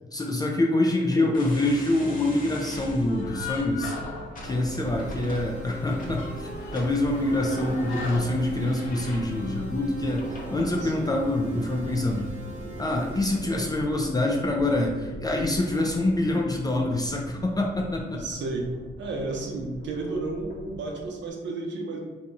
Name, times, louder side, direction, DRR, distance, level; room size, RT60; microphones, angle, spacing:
voice 1, 0.1-4.0 4.4-12.3 12.8-18.2, left 1 dB, 20° left, -1 dB, 0.4 m, -26 dB
sound 1, 1.3-21.0, equal, 45° left, 0.7 m, -41 dB
sound 2, 3.1-5.2 5.5-5.6 6.0-9.2, left 4 dB, 80° left, 0.6 m, -38 dB
sound 3, 4.5-13.2, right 3 dB, 35° right, 1.1 m, -43 dB
voice 2, 10.7-11.1 18.1-18.7 19.0-22.0, right 3 dB, 65° right, 1 dB, 0.7 m, -32 dB
2.8 x 2.3 x 4.0 m, 1.3 s
cardioid pair, 90°, 20 cm